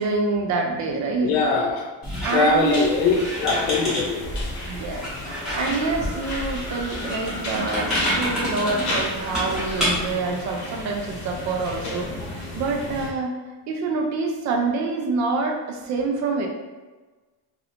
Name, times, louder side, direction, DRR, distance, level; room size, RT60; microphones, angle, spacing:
voice 1, 0.0-1.4 2.2-2.9 4.7-13.4 13.7-16.5, right 3 dB, 40° right, 2 dB, 0.5 m, -26 dB
voice 2, 1.2-1.9 2.3-3.1 3.4-4.3, left 4 dB, 75° left, 2 dB, 0.8 m, -21 dB
Squeak, 2.0-10.1, equal, ahead, 0.9 m, -29 dB
sound 1, 2.6-13.1, left 2 dB, 40° left, 0.8 m, -33 dB
sound 2, 5.4-10.4, left 1 dB, 15° left, 0.4 m, -39 dB
2.7 x 2.6 x 4.1 m, 1.3 s
cardioid pair, 180°, 46 cm